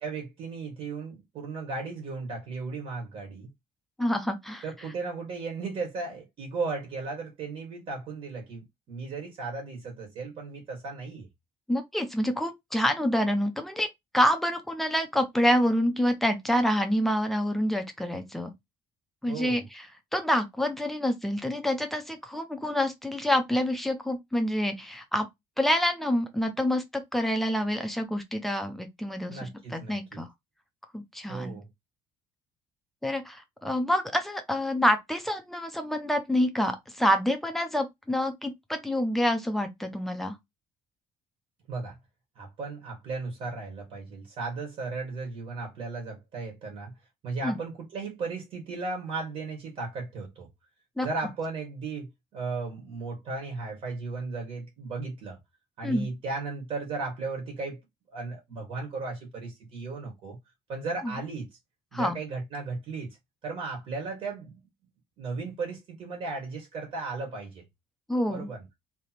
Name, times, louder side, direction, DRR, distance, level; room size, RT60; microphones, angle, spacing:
voice 1, 0.0-3.5 4.6-11.3 19.3-19.6 29.3-30.2 31.3-31.7 41.7-41.9 42.4-46.9 47.2-50.5 51.0-55.4 55.8-57.8 58.1-60.4 60.7-61.5 61.9-63.2 63.4-64.6 65.2-67.6 68.3-68.6, right 3 dB, 45° right, 1.7 m, -35 dB
voice 2, 4.0-4.6 11.7-13.9 14.1-18.5 19.2-19.6 20.1-25.3 25.6-30.3 30.9-31.6 33.0-40.3 47.4-47.6 51.0-51.1 55.8-56.1 61.0-61.1 61.9-62.1 68.1-68.5, equal, ahead, 0.7 m, -27 dB
3.3 x 2.9 x 4.3 m
cardioid pair, 180°, 13 cm